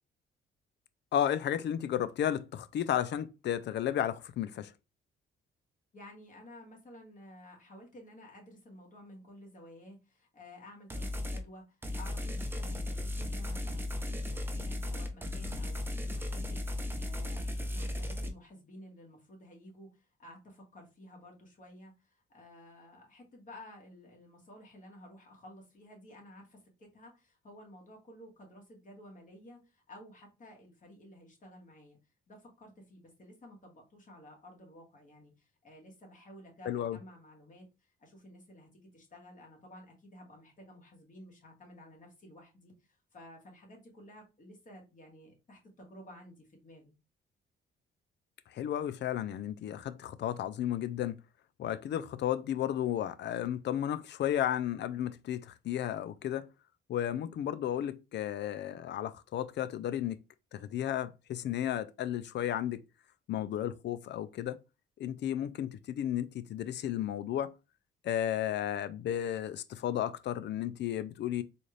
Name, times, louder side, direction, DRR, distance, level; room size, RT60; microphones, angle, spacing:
voice 1, 1.1-4.7 36.6-37.0 48.5-51.2 51.6-56.5 56.9-60.2 60.5-62.8 63.3-64.6 65.0-67.5 68.0-71.4, left 11 dB, 60° left, 0.5 m, -33 dB
voice 2, 5.9-32.0 32.3-46.9, left 1 dB, 40° left, 1.9 m, -53 dB
sound 1, 10.9-11.4 11.8-18.3, left 1 dB, 10° right, 0.7 m, -36 dB
4.0 x 2.5 x 3.2 m
cardioid pair, 90°, 20 cm